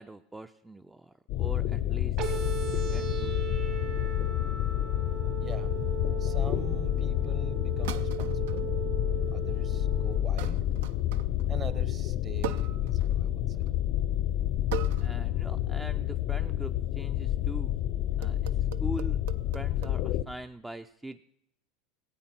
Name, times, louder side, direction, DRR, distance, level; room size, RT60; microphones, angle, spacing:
voice 1, 0.0-2.5 2.9-3.4 15.0-17.7 18.2-19.2 19.5-21.2, right 1 dB, 10° right, 8 dB, 0.4 m, -42 dB
sound 1, 1.3-20.2, left 12 dB, 60° left, 0.5 m, -29 dB
sound 2, 2.2-10.2, right 11 dB, 55° right, 2.7 m, -38 dB
voice 2, 5.4-5.8 6.1-8.8 9.3-10.7 11.5-13.6, right 6 dB, 35° right, 14 dB, 1.0 m, -44 dB
sound 3, 5.5-5.9 7.8-8.7 9.2-9.6 10.4-11.5 12.4-13.3 13.5-13.8 14.7-15.3 15.6-15.9 17.5-17.8 18.2-20.0, right 11 dB, 75° right, 0.5 m, -40 dB
15.5 x 8.7 x 5.9 m, 0.79 s
hypercardioid pair, 90°, 0 cm